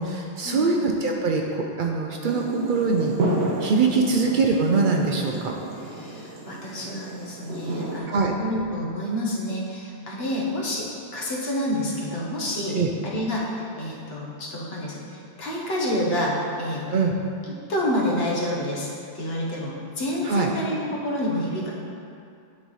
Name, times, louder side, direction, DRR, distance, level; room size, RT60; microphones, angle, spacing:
voice 1, 0.0-3.1 3.6-5.5 8.1-8.3 12.7-12.9 16.9-17.1 20.3-20.5, right 4 dB, 60° right, 1 dB, 0.6 m, -23 dB
sound 1, 2.2-8.0, right 2 dB, 80° right, 1.1 m, -31 dB
voice 2, 5.8-16.9 17.5-18.9 19.1-21.7, left 1 dB, 70° left, -4 dB, 1.3 m, -28 dB
9.6 x 4.0 x 3.1 m, 2.5 s
omnidirectional pair, 1.1 m